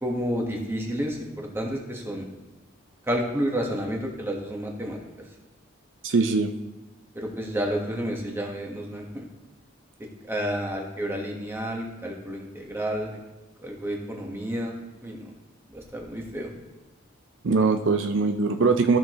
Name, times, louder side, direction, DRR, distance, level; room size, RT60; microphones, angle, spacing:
voice 1, 0.0-2.3 3.1-5.0 7.1-9.2 10.3-13.2 13.6-14.7 15.0-15.2 15.7-16.5, equal, 10° right, 0 dB, 1.4 m, -30 dB
voice 2, 6.0-6.5 17.4-19.0, right 4 dB, 65° right, 6 dB, 0.5 m, -21 dB
14.0 x 6.1 x 3.1 m, 1.1 s
head